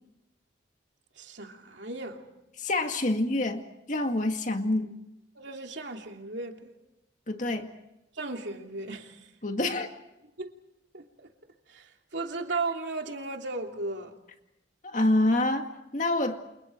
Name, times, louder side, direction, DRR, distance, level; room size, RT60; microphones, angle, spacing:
voice 1, 1.2-2.3 5.3-6.7 8.1-9.3 10.4-10.5 10.9-11.3 11.7-14.2, right 3 dB, 70° right, 2.8 m, -36 dB
voice 2, 2.6-3.6 3.9-5.0 7.3-7.7 9.4-9.9 14.8-16.4, left 2 dB, 40° left, 2.2 m, -27 dB
29.5 x 28.5 x 4.6 m
head